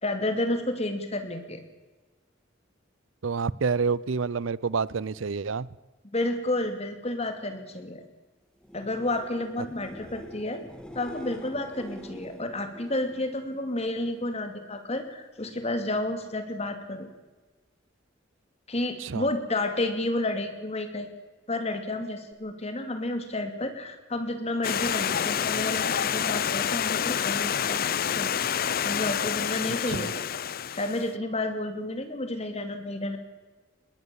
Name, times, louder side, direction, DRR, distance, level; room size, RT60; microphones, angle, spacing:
voice 1, 0.0-1.6 6.0-8.0 8.7-10.6 10.9-17.1 18.7-21.1 21.5-30.1 30.7-33.2, left 1 dB, 35° left, 7 dB, 2.7 m, -31 dB
voice 2, 3.2-5.7 9.6-9.7 19.0-19.3 29.9-30.1, right 5 dB, 80° right, 22 dB, 0.6 m, -28 dB
sound 1, 8.6-14.3 14.7-15.3 22.3-22.4, left 1 dB, 5° left, 2.1 m, -45 dB
Stream, 24.6-31.1, left 8 dB, 50° left, 0.5 m, -28 dB
21.0 x 19.0 x 7.1 m, 1.2 s
head